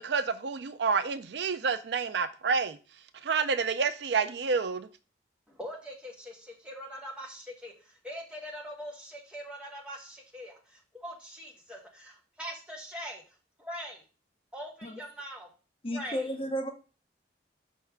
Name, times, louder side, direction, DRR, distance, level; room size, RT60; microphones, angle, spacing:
voice 1, 0.0-2.8 3.2-4.9, right 5 dB, 70° right, 0.4 m, -29 dB
voice 2, 5.5-13.2 13.6-14.0 14.5-15.5 15.9-16.3, equal, 5° right, 1.4 m, -42 dB
voice 3, 15.8-16.7, equal, 30° left, 0.8 m, -33 dB
5.5 x 3.6 x 5.7 m
head